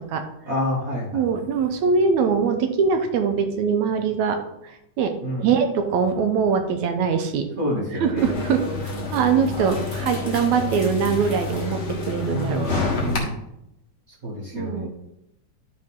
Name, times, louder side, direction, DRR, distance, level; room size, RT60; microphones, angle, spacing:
voice 1, 0.5-1.2 5.2-5.5 7.6-8.3 8.9-9.1 9.6-9.9 12.3-12.7 13.0-13.4 14.2-14.9, left 1 dB, 30° right, -6 dB, 2.4 m, -28 dB
voice 2, 1.1-4.4 4.6-5.1 5.4-7.5 7.9-12.9 14.5-14.9, right 6 dB, 75° right, 6 dB, 2.1 m, -22 dB
sound 1, 8.2-13.2, left 3 dB, 35° left, 1.0 m, -29 dB
12.0 x 4.8 x 3.7 m, 0.83 s
omnidirectional pair, 3.5 m